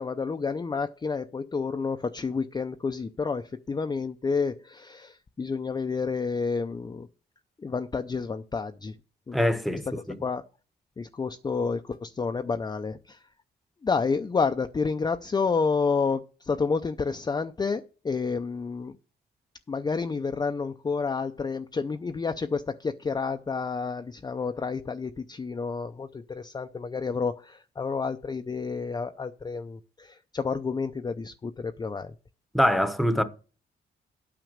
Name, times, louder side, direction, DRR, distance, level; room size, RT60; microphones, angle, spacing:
voice 1, 0.0-7.1 7.6-8.9 9.3-9.4 10.2-10.4 11.0-13.2 13.8-18.9 19.7-32.1, left 5 dB, 20° left, 0.5 m, -30 dB
voice 2, 9.3-9.8 32.5-33.2, equal, ahead, 0.9 m, -23 dB
9.2 x 5.7 x 6.5 m
wide cardioid pair, 145°, 18 cm